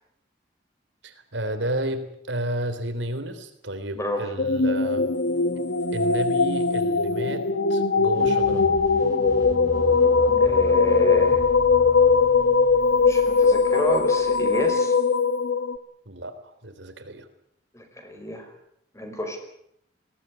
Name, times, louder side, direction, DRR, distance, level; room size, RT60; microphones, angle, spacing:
voice 1, 1.0-5.1 5.9-8.7 16.1-17.3, right 1 dB, 80° right, 8 dB, 3.5 m, -32 dB
voice 2, 3.9-4.3 10.3-11.4 13.0-14.9 17.7-18.5 18.9-19.4, left 1 dB, 15° left, 5 dB, 5.0 m, -30 dB
sound 1, 4.4-15.8, left 4 dB, 75° left, 1.1 m, -20 dB
sound 2, 8.1-14.7, equal, 20° right, 2.9 m, -38 dB
21.5 x 17.5 x 9.6 m, 0.74 s
head